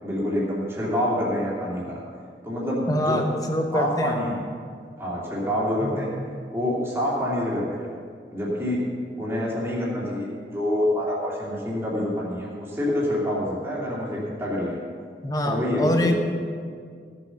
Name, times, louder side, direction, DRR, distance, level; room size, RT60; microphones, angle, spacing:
voice 1, 0.0-2.0 2.4-3.2 3.7-4.3 5.0-6.1 6.5-8.0 8.3-8.8 9.2-14.8 15.4-16.1, left 1 dB, 15° right, -6 dB, 2.7 m, -27 dB
voice 2, 2.9-4.2 5.8-6.1 15.2-16.1, left 1 dB, 20° left, 3 dB, 1.0 m, -24 dB
16.0 x 7.8 x 5.9 m, 2.1 s
head